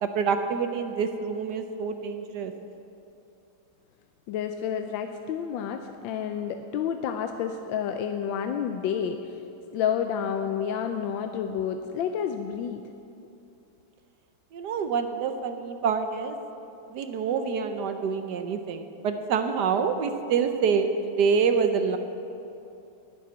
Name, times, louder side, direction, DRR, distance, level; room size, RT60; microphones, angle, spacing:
voice 1, 0.0-2.5 14.5-16.4 16.9-22.0, right 6 dB, 70° right, 7 dB, 1.2 m, -26 dB
voice 2, 4.3-9.2 9.7-12.8, left 8 dB, 80° left, 6 dB, 1.3 m, -29 dB
11.0 x 7.3 x 9.4 m, 2.8 s
omnidirectional pair, 2.2 m